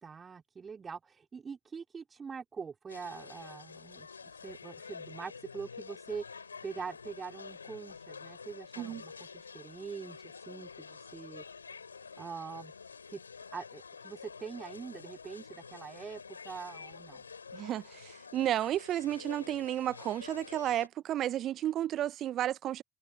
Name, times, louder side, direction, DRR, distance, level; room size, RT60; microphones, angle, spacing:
voice 1, 0.0-11.4 12.2-12.7 13.1-13.2 13.5-17.2, right 5 dB, 35° right, 4.5 m, -44 dB
sound 1, 2.9-20.9, left 5 dB, 85° left, 5.4 m, -48 dB
voice 2, 17.5-22.8, right 12 dB, 50° right, 1.0 m, -32 dB
figure-of-eight pair, 55°, 0 cm